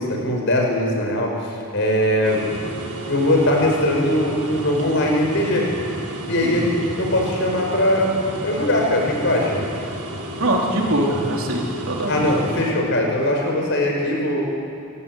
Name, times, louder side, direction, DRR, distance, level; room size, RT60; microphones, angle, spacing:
voice 1, 0.0-2.4 3.1-5.7 6.2-8.2 8.4-9.6 12.1-14.4, left 1 dB, 55° left, 0 dB, 5.9 m, -20 dB
sound 1, 2.2-12.7, right 1 dB, 80° right, 4.5 m, -32 dB
voice 2, 10.4-12.3, right 1 dB, 65° right, -1 dB, 4.3 m, -22 dB
28.5 x 17.0 x 9.4 m, 2.5 s
head